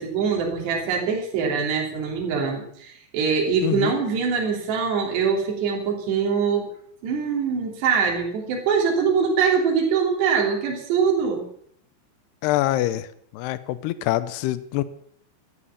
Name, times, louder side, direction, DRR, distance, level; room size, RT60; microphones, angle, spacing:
voice 1, 0.0-6.7 7.0-11.4, right 6 dB, 60° right, 0 dB, 5.1 m, -23 dB
voice 2, 3.6-4.0 12.4-13.1 13.3-14.8, left 15 dB, 80° left, 14 dB, 2.4 m, -25 dB
14.0 x 13.0 x 7.2 m, 0.64 s
omnidirectional pair, 5.5 m